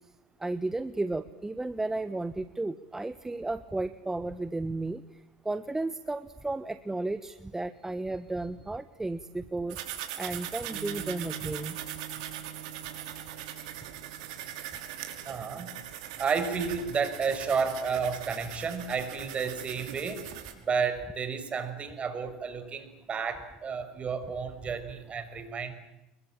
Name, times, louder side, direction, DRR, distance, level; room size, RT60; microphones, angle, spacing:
voice 1, 0.4-5.0 5.4-9.8 10.2-11.8, right 2 dB, 10° right, 12 dB, 1.4 m, -33 dB
sound 1, 9.7-20.5, right 11 dB, 75° right, 5.4 m, -41 dB
Piano, 10.7-17.4, right 10 dB, 60° right, 3.3 m, -48 dB
voice 2, 15.2-15.7 16.2-20.3 20.6-25.7, right 5 dB, 35° right, 10 dB, 6.1 m, -31 dB
29.0 x 22.5 x 8.9 m, 1.0 s
hypercardioid pair, 85°, 4 cm